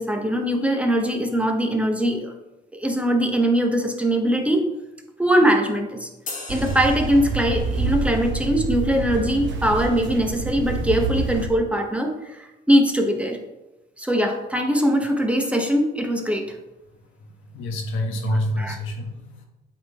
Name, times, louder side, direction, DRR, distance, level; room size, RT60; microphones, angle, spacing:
voice 1, 0.0-2.3 2.7-4.6 5.2-6.1 6.5-13.4 14.0-16.6 18.3-18.8, equal, 5° right, 3 dB, 0.9 m, -21 dB
sound 1, 6.3-7.9, left 3 dB, 40° left, 1.3 m, -38 dB
sound 2, 6.5-11.5, right 4 dB, 70° right, 0.8 m, -27 dB
voice 2, 17.5-19.5, left 1 dB, 85° left, 2 dB, 1.1 m, -27 dB
8.4 x 3.7 x 3.5 m, 1.0 s
cardioid pair, 90°, 20 cm